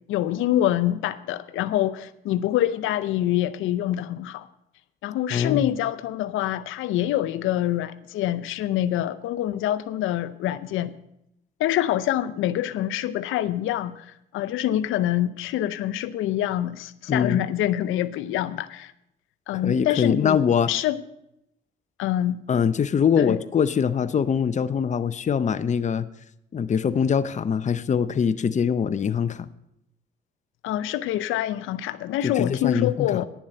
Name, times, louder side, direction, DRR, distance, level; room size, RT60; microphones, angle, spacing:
voice 1, 0.1-4.5 5.0-10.9 11.6-18.9 19.5-20.4 20.7-21.0 22.0-22.4 23.2-23.4 30.6-33.3, left 12 dB, 85° left, 0.6 m, -25 dB
voice 2, 5.3-5.7 17.1-17.4 19.6-20.7 22.5-26.1 26.5-29.5 32.2-33.2, left 7 dB, 35° left, 0.7 m, -23 dB
10.5 x 7.4 x 7.7 m
cardioid pair, 90°, 20 cm